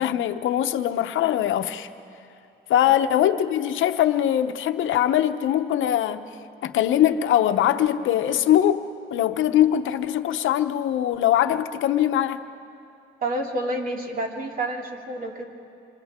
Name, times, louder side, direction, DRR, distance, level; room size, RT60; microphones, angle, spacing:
voice 1, 0.0-1.9 2.7-6.3 6.6-12.4, left 11 dB, 80° left, 9 dB, 0.9 m, -22 dB
voice 2, 13.2-15.4, right 1 dB, 45° right, 1 dB, 2.7 m, -29 dB
27.5 x 26.0 x 3.7 m, 2.6 s
cardioid pair, 90°, 20 cm